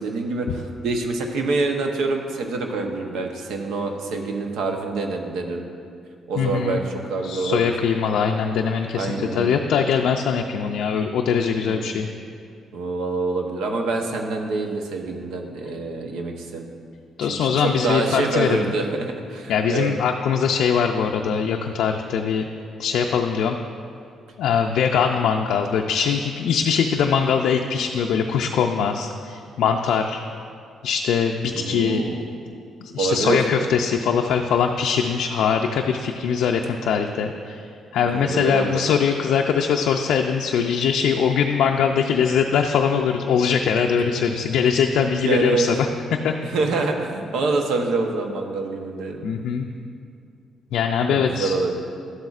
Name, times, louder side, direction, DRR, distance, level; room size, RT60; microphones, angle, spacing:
voice 1, 0.0-5.7 6.3-7.7 8.9-9.6 11.6-11.9 12.7-16.7 17.2-19.9 31.5-32.2 33.0-33.4 38.0-38.8 44.1-44.2 45.0-45.7 46.4-49.2 51.1-51.8, right 3 dB, 80° right, 3 dB, 0.8 m, -26 dB
voice 2, 6.4-6.8 7.2-12.1 17.2-18.7 19.5-22.5 22.8-23.6 24.4-30.2 30.8-32.1 32.8-46.4 49.2-49.7 50.7-51.5, left 7 dB, 80° left, 3 dB, 0.3 m, -22 dB
12.0 x 7.7 x 2.4 m, 2.4 s
cardioid pair, 90°, 0 cm